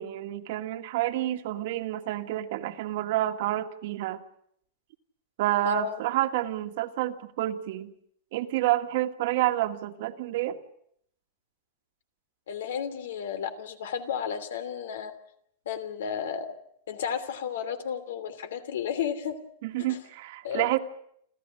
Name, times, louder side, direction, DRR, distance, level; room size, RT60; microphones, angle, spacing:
voice 1, 0.0-4.2 5.4-7.9 8.3-10.6 19.6-20.8, right 14 dB, 55° right, 8 dB, 1.7 m, -29 dB
voice 2, 5.6-6.0 12.5-15.1 15.6-16.5 16.9-19.4 19.9-20.0 20.4-20.7, left 7 dB, 80° left, 11 dB, 3.0 m, -32 dB
29.5 x 13.5 x 9.7 m, 0.70 s
supercardioid pair, 160°, 0 cm